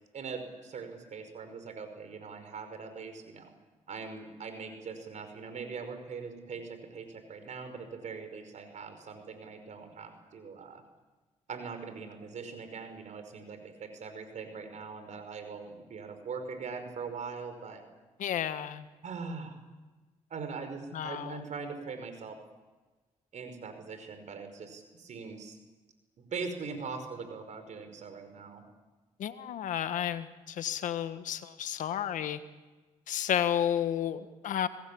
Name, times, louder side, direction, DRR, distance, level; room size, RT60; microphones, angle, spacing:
voice 1, 0.1-3.5 3.9-10.8 11.5-17.8 19.0-19.5 20.3-22.4 23.3-25.6 26.2-28.6, right 5 dB, 65° right, 8 dB, 5.4 m, -41 dB
voice 2, 18.2-18.9 20.9-21.4 29.2-32.4 33.1-34.7, left 10 dB, 75° left, 11 dB, 1.5 m, -32 dB
26.5 x 19.5 x 8.7 m, 1.2 s
supercardioid pair, 60°, 13 cm